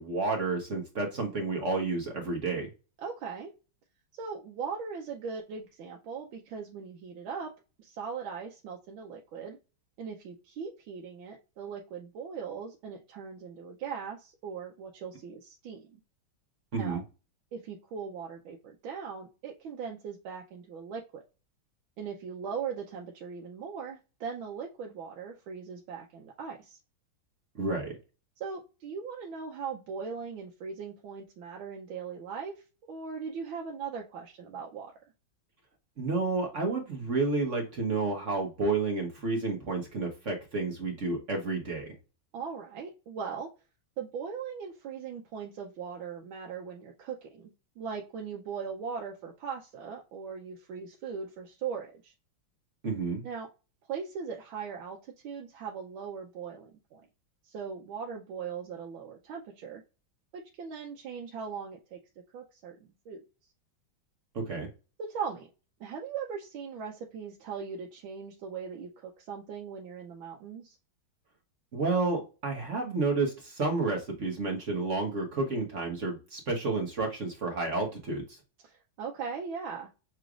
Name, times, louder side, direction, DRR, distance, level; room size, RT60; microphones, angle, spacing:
voice 1, 0.0-2.7 16.7-17.0 27.6-27.9 36.0-41.9 52.8-53.2 64.3-64.7 71.7-78.4, right 3 dB, 50° right, 1 dB, 1.0 m, -30 dB
voice 2, 3.0-3.5 4.1-7.5 7.8-9.6 10.0-16.0 16.8-17.0 17.5-21.2 22.0-26.8 28.4-32.6 32.9-34.9 42.3-43.5 44.0-52.1 53.2-53.5 53.9-57.0 57.4-59.8 60.3-62.0 62.3-63.2 65.0-65.5 65.8-70.8 78.6-79.9, right 6 dB, 80° right, 0 dB, 1.4 m, -39 dB
5.9 x 3.1 x 2.4 m, 0.31 s
omnidirectional pair, 2.2 m